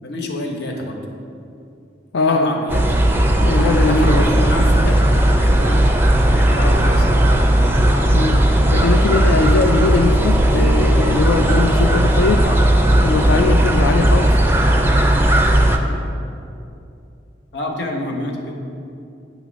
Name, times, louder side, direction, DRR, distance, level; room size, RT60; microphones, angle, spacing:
voice 1, 0.0-1.0 2.3-2.8 3.8-6.0 6.3-7.3 10.5-10.7 12.3-12.6 17.5-18.5, left 1 dB, 65° left, 1 dB, 0.9 m, -28 dB
voice 2, 2.1-2.6 3.4-4.4 8.1-12.4 13.0-14.4, left 3 dB, 80° left, 3 dB, 0.3 m, -20 dB
sound 1, 2.7-15.8, right 1 dB, 10° right, 0.4 m, -15 dB
8.9 x 3.0 x 6.1 m, 2.6 s
head